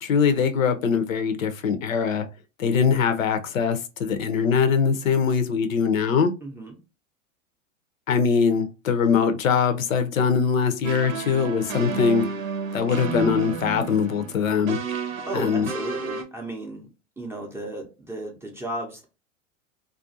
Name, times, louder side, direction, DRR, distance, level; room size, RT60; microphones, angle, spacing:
voice 1, 0.0-2.3 2.6-6.3 8.1-12.2 12.7-14.8 15.3-15.7, left 6 dB, 80° left, 0.6 m, -22 dB
voice 2, 6.4-6.8 15.3-16.9 17.2-19.1, right 1 dB, 5° right, 0.5 m, -34 dB
Minimal House backstage loop pattern, 10.8-16.2, right 4 dB, 85° right, 0.7 m, -31 dB
2.4 x 2.3 x 2.5 m
hypercardioid pair, 100°, 40 cm